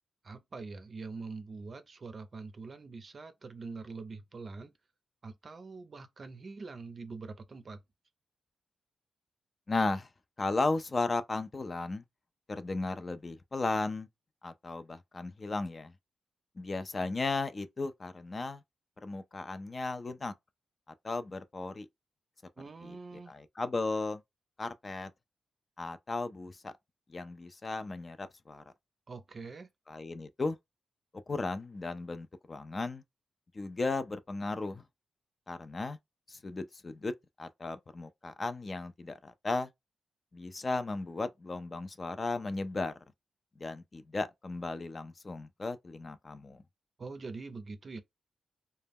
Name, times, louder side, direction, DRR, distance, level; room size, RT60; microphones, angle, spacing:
voice 1, 0.2-4.7 5.2-7.8 22.6-23.3 29.1-29.7 47.0-48.0, right 4 dB, 45° right, 0.4 m, -44 dB
voice 2, 9.7-10.1 10.4-12.0 12.5-14.1 14.4-15.9 16.6-18.6 19.0-20.3 21.0-21.9 22.8-23.0 23.3-24.2 24.6-25.1 25.8-26.7 27.1-28.6 29.9-30.6 31.3-33.0 33.5-34.8 35.5-36.0 36.3-37.1 37.4-39.7 40.3-42.9 43.6-46.6, left 3 dB, 35° left, 0.3 m, -35 dB
2.2 x 2.0 x 3.4 m
cardioid pair, 95°, 0 cm